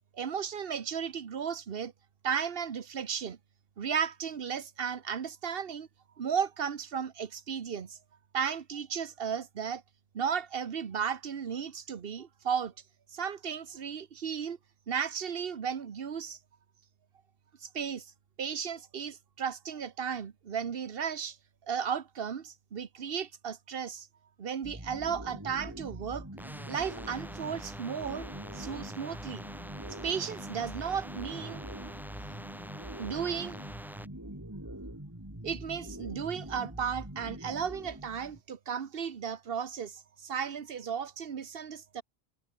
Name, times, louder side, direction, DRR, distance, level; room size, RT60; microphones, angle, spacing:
voice 1, 0.1-1.9 2.2-3.4 3.8-5.9 6.2-8.0 8.3-9.8 10.1-12.7 13.1-14.6 14.9-16.4 17.6-18.1 18.4-21.4 21.7-24.1 24.4-26.3 26.7-28.3 28.5-29.4 29.9-31.6 33.0-33.6 35.4-42.0, right 7 dB, 65° right, 1.3 m, -34 dB
sound 1, 24.6-38.4, right 1 dB, 15° right, 3.5 m, -43 dB
sound 2, 26.4-34.1, equal, ahead, 1.8 m, -46 dB
omnidirectional pair, 1.1 m